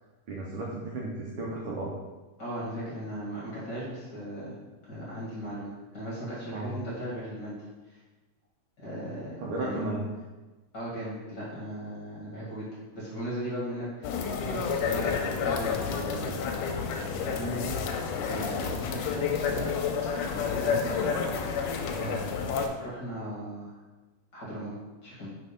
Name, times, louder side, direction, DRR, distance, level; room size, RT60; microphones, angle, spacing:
voice 1, 0.3-1.9 6.5-6.7 9.4-10.0 20.6-20.8 21.9-22.2 22.5-22.6, right 2 dB, 75° right, -3 dB, 1.3 m, -34 dB
voice 2, 2.4-4.5 4.9-7.6 7.9-8.0 8.8-9.8 10.7-12.7 12.9-16.4 17.3-17.7 18.3-19.7 20.3-21.2 22.1-22.4 22.8-23.8 24.3-24.7 25.0-25.3, equal, 40° left, -8 dB, 1.8 m, -37 dB
sound 1, 14.0-22.7, left 6 dB, 85° left, 2.1 m, -30 dB
4.7 x 4.4 x 5.0 m, 1.2 s
omnidirectional pair, 3.7 m